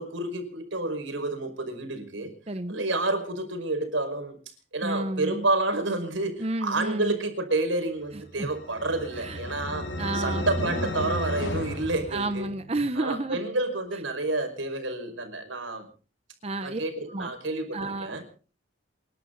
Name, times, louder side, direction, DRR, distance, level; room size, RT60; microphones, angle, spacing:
voice 1, 0.0-2.3 2.7-4.4 4.7-12.5 13.0-15.9 16.6-18.2, right 2 dB, 85° right, 5.4 m, -29 dB
voice 2, 2.5-2.8 4.8-5.5 6.4-7.1 8.4-8.5 9.2-9.4 10.0-10.9 12.1-13.4 16.4-16.8 17.1-17.3 17.7-18.2, right 2 dB, 30° right, 0.8 m, -31 dB
sound 1, 8.3-12.8, left 1 dB, 85° left, 4.7 m, -33 dB
28.5 x 11.5 x 3.9 m
head